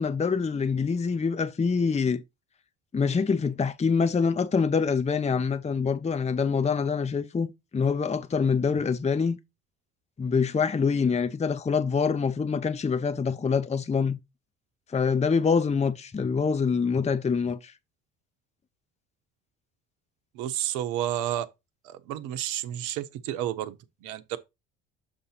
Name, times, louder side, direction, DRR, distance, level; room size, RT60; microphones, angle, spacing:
voice 1, 0.0-2.2 2.9-9.4 10.2-14.2 14.9-17.7, left 5 dB, 20° left, 0.7 m, -25 dB
voice 2, 20.3-21.5 21.8-24.4, right 12 dB, 70° right, 1.0 m, -31 dB
7.0 x 2.7 x 5.6 m
hypercardioid pair, 55°, 32 cm